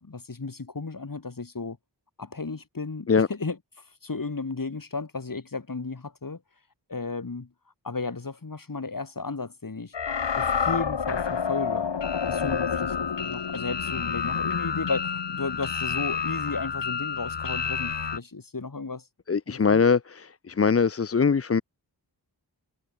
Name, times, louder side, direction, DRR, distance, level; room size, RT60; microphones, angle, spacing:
voice 1, 0.0-1.8 2.2-6.4 6.9-7.5 7.8-9.9 10.3-11.9 12.3-19.0 19.5-19.8, left 4 dB, 50° left, 2.4 m, -34 dB
sound 1, 9.9-18.2, left 6 dB, 80° left, 1.3 m, -29 dB
voice 2, 19.3-21.6, left 5 dB, 35° left, 0.6 m, -22 dB
wide cardioid pair, 45°, 42 cm